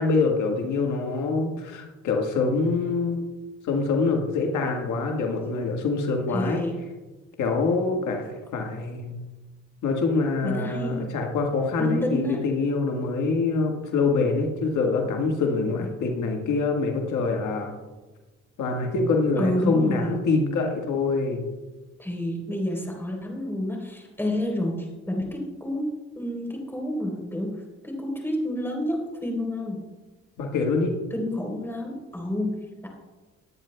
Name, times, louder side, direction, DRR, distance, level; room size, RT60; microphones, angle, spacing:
voice 1, 0.0-3.2 3.6-6.6 7.4-9.2 9.8-17.7 18.6-21.4 30.4-30.9, left 3 dB, 80° left, 1 dB, 1.5 m, -25 dB
voice 2, 6.3-6.8 10.4-11.1 11.8-12.4 19.4-20.1 22.0-25.9 26.1-27.6 27.8-29.8 31.1-32.6 32.8-32.9, left 1 dB, 5° left, 1 dB, 3.4 m, -29 dB
19.5 x 9.3 x 2.2 m, 1.2 s
cardioid pair, 90°, 30 cm